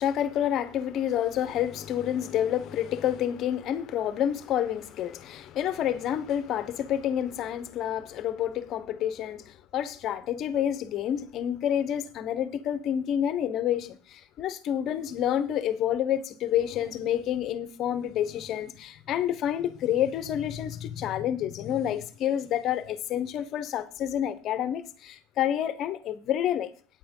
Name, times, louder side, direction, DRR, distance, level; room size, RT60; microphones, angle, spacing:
voice 1, 0.0-26.7, left 10 dB, 45° left, 1.0 m, -29 dB
9.0 x 8.6 x 5.4 m
supercardioid pair, 135°, 0 cm